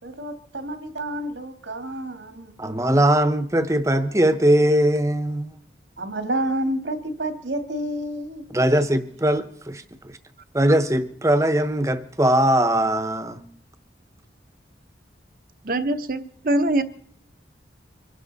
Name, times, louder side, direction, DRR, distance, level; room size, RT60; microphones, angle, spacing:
voice 1, 0.0-2.6 6.0-8.5, right 1 dB, 85° right, 2.0 m, -29 dB
voice 2, 2.6-5.5 8.5-10.2 10.5-13.4, right 1 dB, 15° right, 0.9 m, -20 dB
voice 3, 15.6-16.8, right 1 dB, 50° right, 0.9 m, -23 dB
25.0 x 11.5 x 4.1 m
head